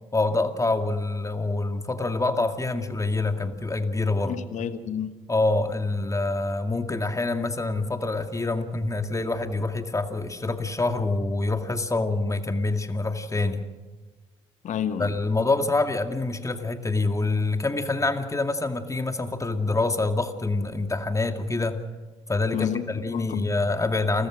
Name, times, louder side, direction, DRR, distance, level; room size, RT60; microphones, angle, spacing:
voice 1, 0.1-4.5 5.3-13.6 15.0-21.8 22.3-24.3, left 2 dB, 25° left, 2.2 m, -26 dB
voice 2, 4.2-5.1 14.6-15.1 22.5-22.9 23.1-23.4, left 9 dB, 65° left, 1.3 m, -30 dB
29.0 x 14.0 x 6.4 m
hypercardioid pair, 50°, 13 cm